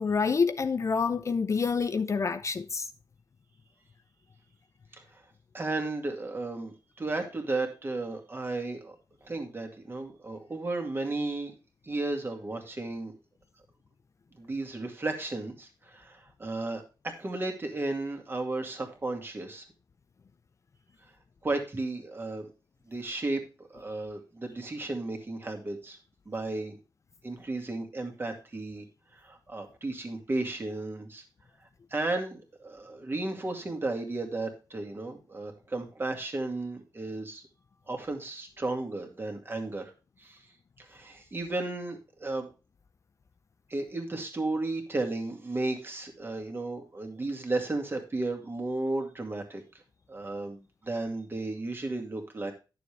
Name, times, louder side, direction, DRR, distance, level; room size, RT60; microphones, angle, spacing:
voice 1, 0.0-2.9, left 5 dB, 40° left, 0.5 m, -27 dB
voice 2, 4.9-5.2 5.5-9.0 9.2-11.5 11.8-13.1 14.3-19.6 21.4-22.5 22.9-26.0 26.3-26.8 27.2-28.8 29.1-31.2 31.9-37.4 37.9-39.9 40.2-40.5 40.8-42.5 43.7-49.6 50.1-52.5, right 2 dB, 30° right, 2.1 m, -34 dB
10.5 x 6.9 x 3.4 m
wide cardioid pair, 130°, 8 cm